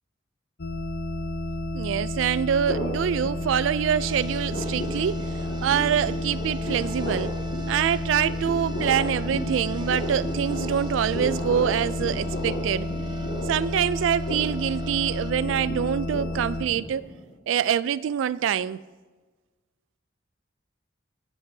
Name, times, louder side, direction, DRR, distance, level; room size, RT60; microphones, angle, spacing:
sound 1, 0.6-16.7, left 1 dB, 55° left, 0.7 m, -31 dB
voice 1, 1.7-7.4 7.7-12.9 13.5-17.1 17.5-18.8, right 8 dB, 90° right, 0.3 m, -25 dB
sound 2, 2.7-3.9 4.2-17.3, equal, 85° left, 1.8 m, -35 dB
sound 3, 4.0-15.3, right 2 dB, 25° right, 0.7 m, -45 dB
20.0 x 8.0 x 2.7 m
head